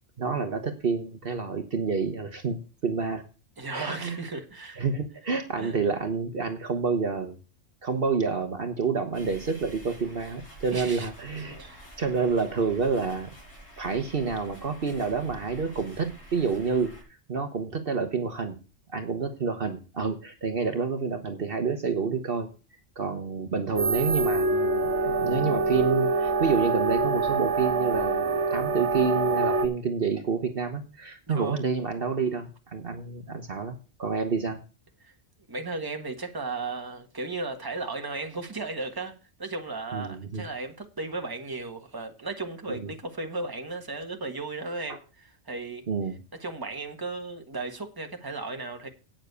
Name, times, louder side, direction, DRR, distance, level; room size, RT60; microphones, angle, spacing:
voice 1, 0.2-3.2 3.7-4.2 4.8-7.4 7.8-11.6 12.0-13.3 13.8-16.9 17.3-18.6 18.9-22.5 23.0-34.6 39.9-40.4 42.7-42.9 44.9-45.0 45.9-46.2, right 5 dB, 55° right, 1.2 m, -28 dB
voice 2, 3.6-4.8 5.6-5.7 10.7-11.1 11.6-12.0 31.3-31.6 35.0-35.1 35.5-45.8 46.4-48.9, right 3 dB, 20° right, 1.4 m, -35 dB
sound 1, 9.1-17.0, equal, 70° left, 5.2 m, -48 dB
sound 2, 23.8-29.7, right 3 dB, 70° right, 1.5 m, -25 dB
9.0 x 7.2 x 6.7 m
omnidirectional pair, 1.2 m